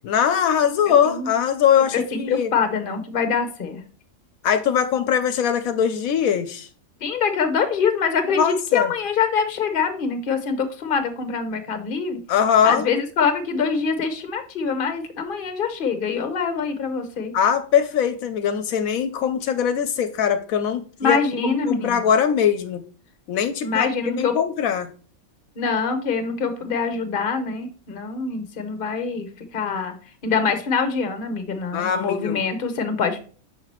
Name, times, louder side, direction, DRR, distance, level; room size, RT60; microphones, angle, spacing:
voice 1, 0.0-2.5 4.4-6.7 8.3-8.9 12.3-12.9 17.3-21.2 21.4-22.8 23.3-24.9 31.7-32.4, left 8 dB, 75° left, 10 dB, 1.0 m, -21 dB
voice 2, 1.9-3.8 7.0-12.2 12.6-17.3 21.0-22.1 23.6-24.3 25.6-30.0 30.2-33.2, left 5 dB, 45° left, 8 dB, 1.0 m, -24 dB
6.0 x 5.7 x 3.0 m, 0.40 s
omnidirectional pair, 1.5 m